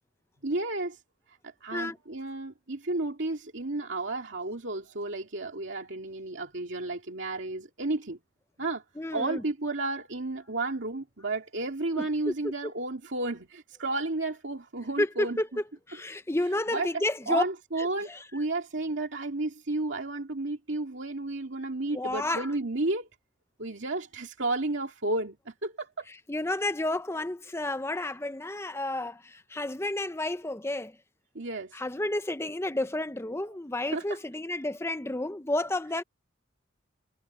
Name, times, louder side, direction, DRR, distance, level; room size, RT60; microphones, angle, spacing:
voice 1, 0.4-1.0 1.4-8.2 8.6-8.8 9.1-15.4 16.7-16.9 17.3-23.1 23.6-26.1 31.3-31.7 33.9-34.2, right 2 dB, 65° right, 2.4 m, -32 dB
voice 2, 9.0-9.4 12.0-12.1 15.0-17.4 18.1-18.2 21.9-22.5 26.3-31.0 31.7-36.0, left 1 dB, 15° left, 0.7 m, -31 dB
head